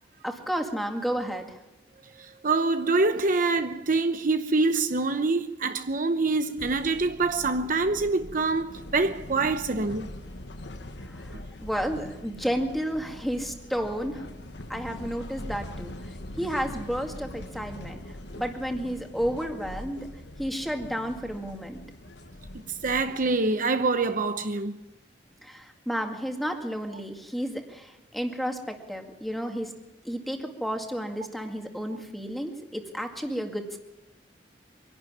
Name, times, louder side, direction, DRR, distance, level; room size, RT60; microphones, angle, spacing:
voice 1, 0.2-1.6 11.1-11.3 11.6-14.2 14.7-15.9 16.4-18.0 18.4-20.1 20.4-21.8 25.4-29.7 30.0-33.8, equal, ahead, 2.1 m, -31 dB
voice 2, 2.2-10.1 22.8-24.8, right 3 dB, 50° right, 0.9 m, -25 dB
sound 1, 6.6-23.4, left 1 dB, 75° left, 1.3 m, -42 dB
24.0 x 11.5 x 9.7 m
head